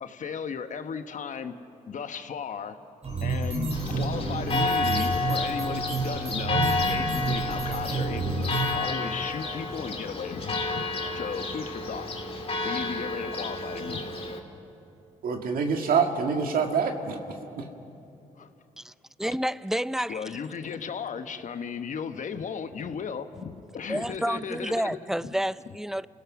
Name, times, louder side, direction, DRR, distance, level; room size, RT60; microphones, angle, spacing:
voice 1, 0.0-1.5 1.9-2.8 3.2-10.9 11.1-12.1 12.6-14.2 20.1-25.0 25.2-25.3, left 6 dB, 55° left, 1.2 m, -35 dB
sound 1, 3.0-8.9, right 3 dB, 45° right, 4.0 m, -30 dB
Church bell, 3.7-14.4, left 3 dB, 40° left, 2.4 m, -31 dB
voice 2, 15.2-17.7, right 5 dB, 75° right, 1.9 m, -26 dB
voice 3, 19.2-20.4 23.9-26.1, equal, 5° right, 0.4 m, -30 dB
28.5 x 16.5 x 6.2 m
cardioid pair, 70°, 15 cm